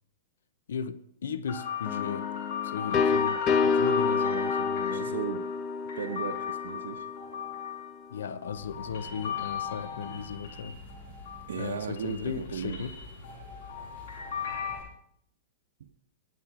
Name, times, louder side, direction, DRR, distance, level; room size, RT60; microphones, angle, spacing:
voice 1, 0.7-2.3 2.6-5.2 8.1-10.8 11.5-12.9, left 7 dB, 85° left, 0.9 m, -36 dB
sound 1, 1.5-11.7 12.0-14.8, left 7 dB, 65° left, 7.0 m, -36 dB
sound 2, 1.9-7.5, left 5 dB, 30° left, 1.0 m, -29 dB
voice 2, 4.9-5.5 6.0-7.1 11.5-12.9 15.8-15.9, right 8 dB, 80° right, 1.0 m, -36 dB
sound 3, 8.5-14.8, left 2 dB, 50° left, 6.0 m, -48 dB
20.5 x 8.6 x 6.1 m
hypercardioid pair, 145°, 0 cm